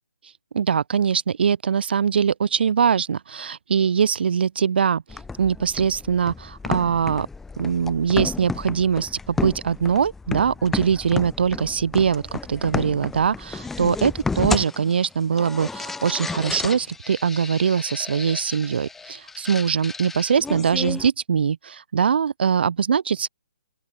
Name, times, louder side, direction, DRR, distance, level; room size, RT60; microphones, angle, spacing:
voice 1, 0.5-7.3 7.6-23.3, right 7 dB, 60° right, 0.4 m, -22 dB
sound 1, 5.1-21.1, left 4 dB, 5° left, 0.5 m, -32 dB
open air
hypercardioid pair, 150°, 6 cm